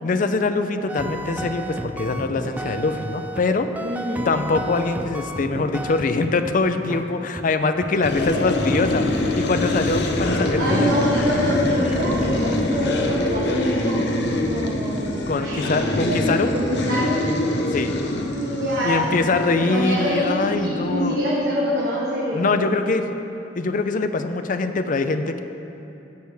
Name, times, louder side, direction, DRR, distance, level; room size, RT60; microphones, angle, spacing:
voice 1, 0.0-3.7 4.2-10.9 15.3-16.6 17.7-17.9 18.8-21.2 22.3-23.0 23.6-25.4, left 3 dB, 45° left, 8 dB, 0.5 m, -23 dB
sound 1, 0.9-3.5 3.8-6.5 6.9-7.0 7.4-7.5 7.8-8.4 8.7-8.9 9.2-9.3 9.6-10.2 10.7-10.9 11.3-11.4 11.9-12.6, right 1 dB, 10° right, 0.4 m, -33 dB
voice 2, 3.8-4.3 10.6-14.2 14.5-17.2 18.3-19.1 19.6-22.7, equal, 60° right, -6 dB, 1.4 m, -25 dB
sound 2, 8.0-20.9, left 1 dB, 65° left, 0.9 m, -24 dB
15.5 x 6.6 x 3.5 m, 3.0 s
head